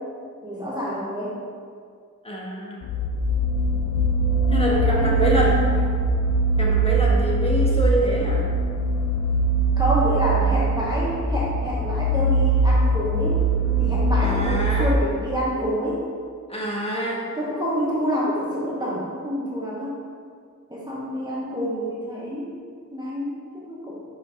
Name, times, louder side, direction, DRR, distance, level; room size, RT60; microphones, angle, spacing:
voice 1, 0.4-1.4 4.7-6.0 9.8-13.4 13.8-16.0 17.2-20.0 20.7-22.5 22.9-24.0, equal, 15° right, -6 dB, 1.0 m, -28 dB
voice 2, 2.2-2.8 4.5-5.5 6.6-8.4 14.2-14.9 16.5-17.2, right 1 dB, 20° left, -4 dB, 1.4 m, -25 dB
sound 1, 2.8-14.9, right 2 dB, 55° left, 0.6 m, -21 dB
5.2 x 4.7 x 5.1 m, 2.1 s
wide cardioid pair, 110°, 32 cm